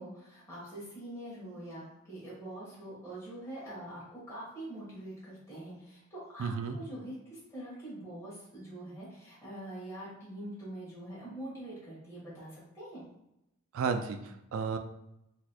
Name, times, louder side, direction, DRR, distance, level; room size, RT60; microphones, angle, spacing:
voice 1, 0.0-13.0, right 1 dB, 15° left, -8 dB, 1.4 m, -44 dB
voice 2, 6.4-6.8 13.7-14.8, right 5 dB, 60° right, 7 dB, 0.3 m, -33 dB
4.0 x 2.9 x 2.3 m, 0.85 s
head